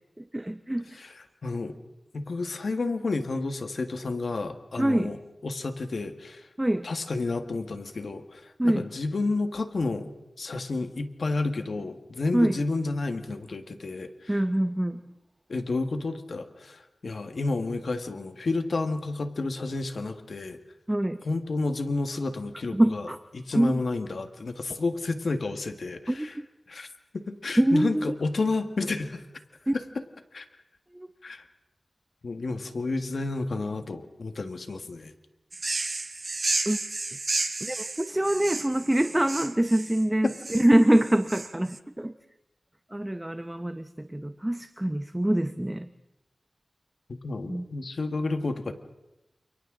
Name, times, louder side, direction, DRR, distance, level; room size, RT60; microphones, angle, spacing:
voice 1, 0.2-1.0 4.8-5.1 6.6-6.9 8.6-8.9 12.3-12.6 14.3-15.1 20.9-21.2 22.7-23.2 23.5-23.8 26.1-26.4 27.6-28.1 29.7-29.8 30.9-31.1 36.7-36.8 37.6-42.1 42.9-45.9 47.4-47.6, right 1 dB, 15° right, 9 dB, 0.8 m, -25 dB
voice 2, 1.4-1.7 2.1-5.2 5.4-6.5 6.8-10.1 10.4-14.3 15.5-20.6 21.2-23.1 23.3-26.3 26.7-26.9 27.1-29.2 30.3-30.5 31.2-31.4 32.2-35.1 40.2-40.3 47.1-48.7, left 3 dB, 75° left, 7 dB, 1.7 m, -30 dB
sound 1, 35.5-41.8, right 3 dB, 50° right, 0.9 m, -32 dB
30.0 x 28.0 x 3.9 m, 0.91 s
wide cardioid pair, 95°, 0 cm